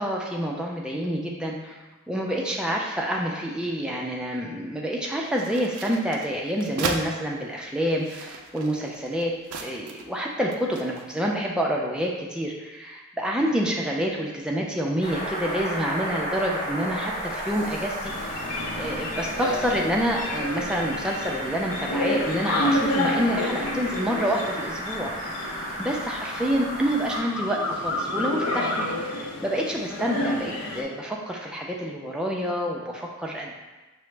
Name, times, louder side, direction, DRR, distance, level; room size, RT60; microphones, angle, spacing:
voice 1, 0.0-9.3 9.6-25.1 25.8-33.6, equal, 5° right, -2 dB, 0.3 m, -28 dB
sound 1, 5.3-7.1 7.8-10.2 10.5-11.2, right 4 dB, 80° right, 0.4 m, -36 dB
sound 2, 15.0-27.2, equal, 30° left, 0.8 m, -34 dB
sound 3, 18.0-30.8, left 1 dB, 90° left, 0.6 m, -30 dB
5.7 x 2.0 x 3.2 m, 1.2 s
head